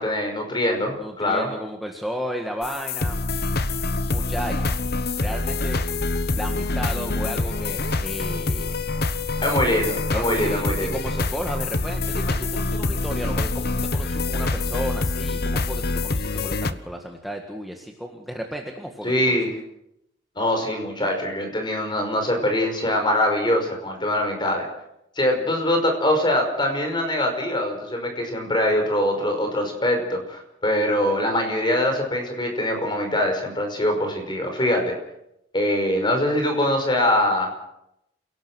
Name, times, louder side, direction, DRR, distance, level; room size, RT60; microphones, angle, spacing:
voice 1, 0.0-1.5 9.4-11.0 19.0-19.5 20.4-24.7 25.2-34.9 35.5-37.5, left 1 dB, 25° left, 4 dB, 5.3 m, -23 dB
voice 2, 1.0-3.2 4.1-4.7 5.2-5.8 6.3-8.7 9.6-9.8 10.1-19.4, equal, ahead, 1 dB, 1.7 m, -33 dB
sound 1, 2.6-16.7, left 3 dB, 55° left, 1.2 m, -25 dB
28.5 x 18.0 x 6.3 m, 0.81 s
head